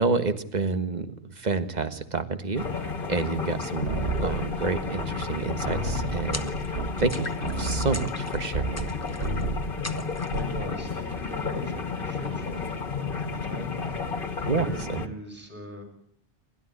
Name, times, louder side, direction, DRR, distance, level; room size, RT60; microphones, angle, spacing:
voice 1, 0.0-6.5 7.0-8.9 14.4-15.0, right 4 dB, 40° right, 10 dB, 1.6 m, -29 dB
sound 1, 2.5-15.1, left 5 dB, 50° left, 1.9 m, -32 dB
sound 2, 3.9-5.4 5.6-8.9 9.2-9.8 10.1-10.7, right 3 dB, 75° right, 2.0 m, -32 dB
sound 3, 6.3-6.8 7.1-7.6 7.9-8.4 8.8-9.4 9.8-10.5, left 1 dB, 15° left, 1.1 m, -40 dB
voice 2, 10.3-13.7 14.5-15.8, left 1 dB, 10° right, 4 dB, 7.0 m, -40 dB
29.0 x 13.0 x 9.9 m, 0.65 s
omnidirectional pair, 1.2 m